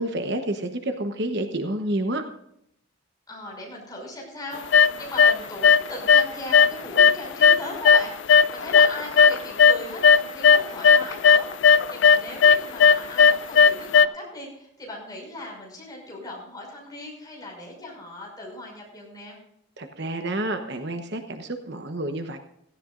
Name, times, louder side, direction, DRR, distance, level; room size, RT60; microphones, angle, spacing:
voice 1, 0.0-2.2 19.8-22.4, right 1 dB, 55° right, 6 dB, 1.1 m, -29 dB
voice 2, 3.3-19.4, left 1 dB, 20° left, -1 dB, 5.9 m, -38 dB
sound 1, 4.7-5.4 5.6-6.3 6.5-9.8 10.0-14.1, left 6 dB, 60° left, 0.5 m, -15 dB
17.0 x 15.5 x 2.5 m, 0.76 s
head